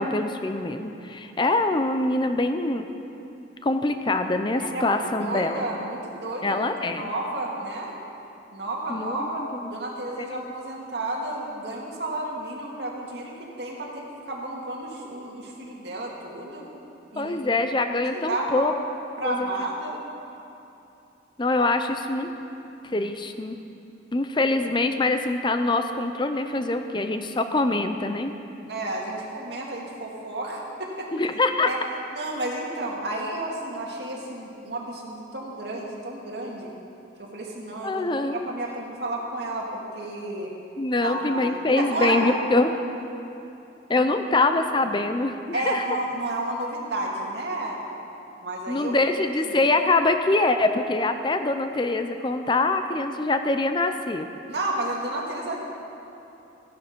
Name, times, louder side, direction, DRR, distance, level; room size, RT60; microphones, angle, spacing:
voice 1, 0.0-2.9 3.6-5.7 6.4-7.1 8.9-9.7 10.2-10.4 17.2-18.7 19.2-19.5 21.4-22.3 22.8-23.6 24.1-28.3 31.1-31.7 37.8-38.5 40.8-42.7 43.9-45.9 48.7-54.3, left 2 dB, 25° left, 7 dB, 0.5 m, -24 dB
voice 2, 4.6-7.9 8.5-9.4 9.7-16.7 17.1-17.5 18.0-18.7 19.2-20.0 28.6-31.1 31.6-31.8 32.1-36.7 37.2-40.5 41.0-42.2 44.0-44.1 45.5-47.8 48.4-48.9 49.4-49.5 54.5-55.6, right 2 dB, 60° right, -2 dB, 2.2 m, -32 dB
15.0 x 11.5 x 5.2 m, 2.9 s
head